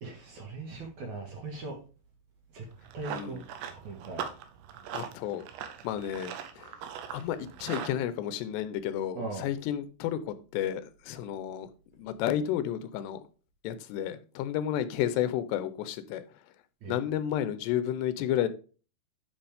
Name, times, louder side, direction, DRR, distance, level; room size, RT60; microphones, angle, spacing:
voice 1, 0.0-1.8 2.5-2.6 2.9-3.4 3.7-4.3 9.1-9.5 16.8-17.0, right 3 dB, 55° right, 2.5 m, -39 dB
Run, 2.6-8.0, right 8 dB, 85° right, 3.1 m, -40 dB
voice 2, 3.1-3.4 4.9-5.5 5.8-6.7 7.1-13.2 13.6-16.2 16.9-18.5, left 11 dB, 85° left, 2.9 m, -32 dB
11.5 x 5.5 x 3.5 m
omnidirectional pair, 4.9 m